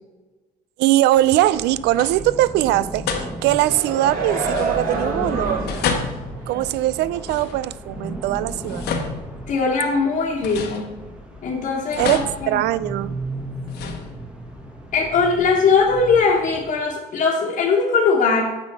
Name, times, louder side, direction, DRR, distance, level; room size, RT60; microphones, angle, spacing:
voice 1, 0.8-5.7 6.5-8.9 12.0-13.1, right 15 dB, 85° right, 18 dB, 0.4 m, -21 dB
sound 1, 1.2-1.6 1.9-2.4 3.1-3.7 4.5-5.2 5.7-7.9 8.5-9.9 10.4-11.4 11.9-13.2 13.7-14.6, left 6 dB, 75° left, 1.2 m, -31 dB
sound 2, 1.4-16.7, right 1 dB, 5° right, 1.3 m, -35 dB
sound 3, 3.4-6.1 6.5-6.6, right 3 dB, 60° right, 2.9 m, -28 dB
voice 2, 9.5-11.0 11.4-12.6 14.9-18.4, left 4 dB, 50° left, -2 dB, 1.3 m, -20 dB
9.2 x 4.0 x 6.7 m, 1.2 s
cardioid pair, 110°, 17 cm